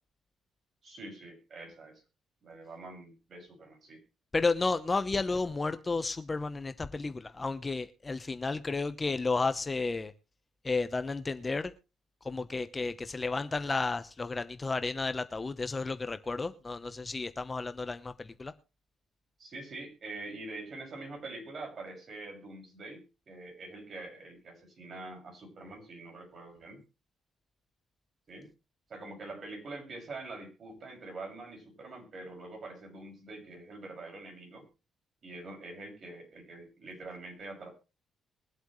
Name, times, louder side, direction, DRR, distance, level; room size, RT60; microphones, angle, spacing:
voice 1, 0.8-2.0 2.4-4.0 19.4-26.8 28.3-28.5 28.9-34.6 35.2-37.7, right 2 dB, 50° right, 2 dB, 6.3 m, -45 dB
voice 2, 4.3-10.1 10.6-11.7 12.2-18.5, left 3 dB, 25° left, 11 dB, 0.9 m, -32 dB
22.5 x 7.9 x 3.2 m, 0.30 s
cardioid pair, 90°, 0 cm